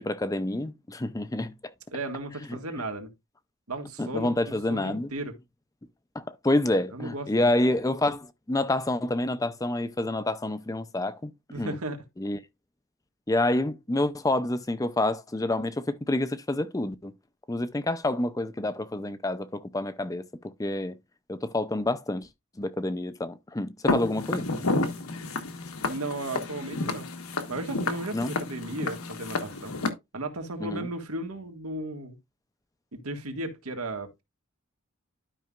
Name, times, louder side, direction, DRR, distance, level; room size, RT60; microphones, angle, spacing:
voice 1, 0.0-1.5 4.0-5.1 6.2-11.3 11.6-11.8 12.2-12.4 13.3-17.1 17.5-21.0 21.3-22.3 22.6-24.5 28.1-28.3 30.6-30.9, left 1 dB, 15° left, 0.5 m, -28 dB
voice 2, 1.9-3.1 3.7-5.3 6.9-7.5 11.5-12.0 25.8-27.1 27.5-29.7 30.1-32.2 32.9-34.2, right 2 dB, 90° right, 1.8 m, -35 dB
Walk footsteps, 23.9-29.9, left 3 dB, 85° left, 1.3 m, -31 dB
12.0 x 5.5 x 2.4 m
head